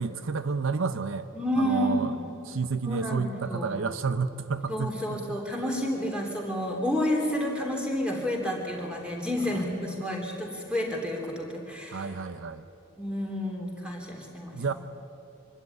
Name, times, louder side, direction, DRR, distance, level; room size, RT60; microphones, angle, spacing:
voice 1, 0.0-1.3 1.6-2.1 2.4-5.4 11.9-12.7 14.5-14.7, right 4 dB, 75° right, 12 dB, 0.6 m, -30 dB
voice 2, 1.3-2.3 2.8-3.8 4.7-12.1 13.0-14.6, equal, 5° right, 0 dB, 3.3 m, -30 dB
25.0 x 12.5 x 9.6 m, 2.9 s
head